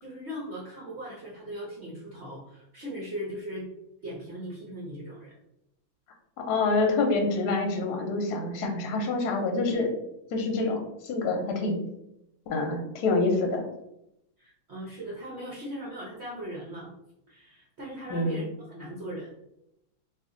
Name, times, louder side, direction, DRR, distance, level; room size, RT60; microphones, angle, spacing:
voice 1, 0.0-3.7 4.0-5.3 14.4-16.9 17.3-19.3, equal, 60° right, -5 dB, 0.7 m, -39 dB
voice 2, 6.4-9.9 10.3-11.8 12.5-13.6 18.1-18.4, left 3 dB, 65° left, 3 dB, 1.0 m, -27 dB
2.9 x 2.5 x 3.6 m, 0.83 s
omnidirectional pair, 2.1 m